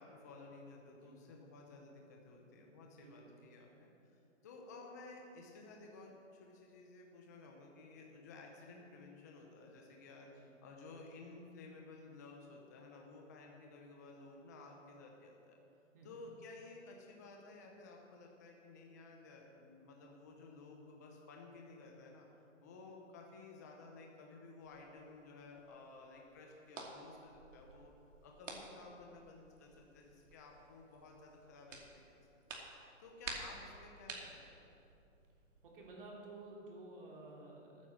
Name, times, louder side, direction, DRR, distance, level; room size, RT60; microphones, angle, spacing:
voice 1, 0.0-3.9 4.4-15.6 16.0-22.3 22.6-27.9 28.2-31.8 32.1-32.2 33.0-34.6, left 3 dB, 15° left, 0 dB, 0.7 m, -55 dB
voice 2, 2.9-3.3 10.3-10.5 15.9-16.1 35.6-37.9, right 2 dB, 45° right, -1 dB, 3.0 m, -53 dB
sound 1, 24.6-35.9, right 3 dB, 70° right, 2.6 m, -52 dB
13.0 x 9.5 x 7.5 m, 2.7 s
hypercardioid pair, 175°, 39 cm